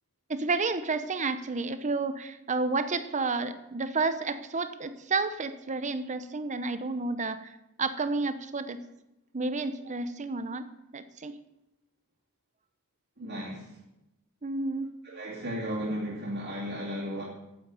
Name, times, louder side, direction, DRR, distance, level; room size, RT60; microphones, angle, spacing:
voice 1, 0.3-7.5 7.8-8.8 9.3-10.7 10.9-11.4 14.4-14.9, right 3 dB, 35° right, 11 dB, 0.8 m, -31 dB
voice 2, 13.2-13.7 15.0-17.2, equal, 50° right, -6 dB, 2.6 m, -34 dB
9.3 x 7.7 x 7.7 m, 0.92 s
head